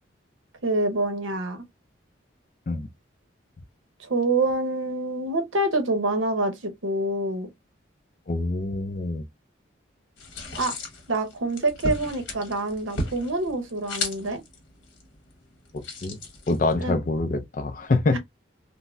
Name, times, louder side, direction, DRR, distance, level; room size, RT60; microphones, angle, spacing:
voice 1, 0.6-1.6 4.0-7.5 10.6-10.8 11.1-14.4 16.8-17.0 18.1-18.2, right 2 dB, 85° right, 0.8 m, -26 dB
voice 2, 8.3-9.3 15.7-16.2 16.5-18.2, left 3 dB, 40° left, 0.4 m, -25 dB
sound 1, 10.2-16.9, left 2 dB, 75° left, 1.1 m, -36 dB
3.9 x 2.0 x 2.3 m
head